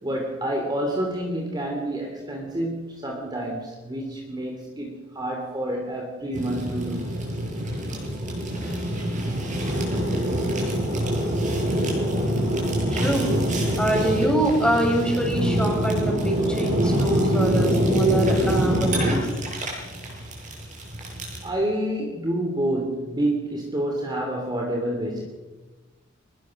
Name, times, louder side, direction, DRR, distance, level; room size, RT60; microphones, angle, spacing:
voice 1, 0.0-7.1 21.4-25.2, right 1 dB, 20° right, 1 dB, 3.2 m, -28 dB
Fire, 6.3-21.5, equal, 40° right, 7.8 m, -25 dB
voice 2, 12.9-13.3 13.8-19.2, right 1 dB, 5° left, 0 dB, 6.3 m, -24 dB
23.5 x 20.0 x 6.5 m, 1.2 s
head